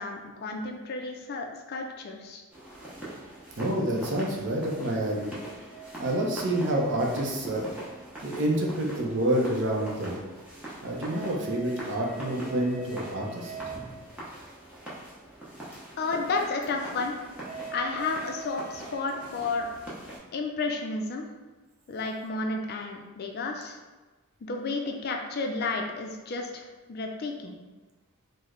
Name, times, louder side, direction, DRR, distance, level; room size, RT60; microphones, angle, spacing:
voice 1, 0.0-2.4 16.0-17.2 17.7-19.7 20.3-21.3 21.9-23.8 24.4-27.5, left 3 dB, 45° left, 2 dB, 0.3 m, -32 dB
sound 1, 2.5-20.2, right 2 dB, 5° right, 0.7 m, -41 dB
voice 2, 3.6-5.3 6.0-7.7 8.2-10.2 10.8-13.6, right 1 dB, 55° right, -1 dB, 0.5 m, -28 dB
3.1 x 2.1 x 3.6 m, 1.2 s
head